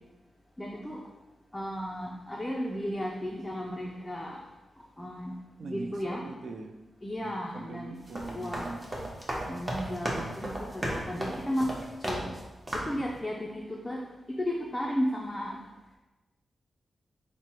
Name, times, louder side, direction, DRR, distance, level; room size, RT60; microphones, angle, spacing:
voice 1, 0.6-1.0 1.5-4.4 5.0-5.3 5.6-6.2 7.0-8.0 8.3-8.7 9.5-12.3 12.7-14.0 14.3-15.6, equal, 15° left, -2 dB, 0.4 m, -34 dB
voice 2, 5.6-6.8 7.2-9.1 13.0-13.2, right 3 dB, 60° right, 5 dB, 0.4 m, -42 dB
sound 1, 8.0-12.4 12.7-13.0, right 1 dB, 20° right, 0.7 m, -35 dB
4.6 x 2.0 x 4.3 m, 1.1 s
wide cardioid pair, 130°, 0 cm